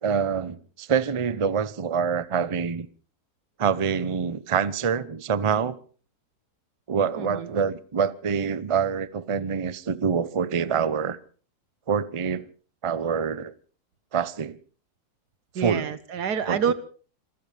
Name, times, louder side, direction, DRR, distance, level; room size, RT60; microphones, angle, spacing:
voice 1, 0.0-2.9 3.6-5.8 6.9-11.2 11.9-12.5 12.8-13.5 14.1-14.6 15.6-15.9 16.5-16.7, right 6 dB, 30° right, 0.6 m, -26 dB
voice 2, 7.2-7.5 15.5-16.7, right 7 dB, 90° right, 1.8 m, -27 dB
27.5 x 15.5 x 3.4 m
omnidirectional pair, 1.7 m